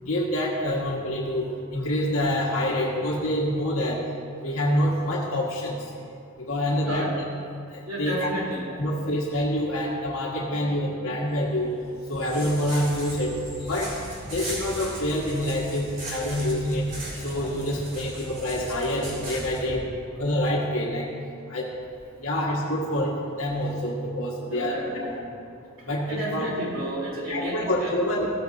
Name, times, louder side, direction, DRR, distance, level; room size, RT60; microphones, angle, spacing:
voice 1, 0.0-4.0 4.4-5.8 6.4-7.1 7.7-8.3 8.7-11.7 12.1-13.4 13.7-13.9 14.3-16.9 17.2-19.8 20.1-21.1 21.5-21.7 22.2-25.1 25.8-26.5 27.3-28.3, left 1 dB, 85° left, -3 dB, 1.5 m, -26 dB
voice 2, 6.8-7.1 7.9-9.0 10.5-10.6 11.0-11.2 24.4-25.1 26.1-27.9, right 1 dB, 70° right, -4 dB, 3.4 m, -32 dB
sound 1, 11.4-19.6, right 1 dB, 40° right, 3.4 m, -37 dB
15.5 x 14.0 x 2.7 m, 2.4 s
head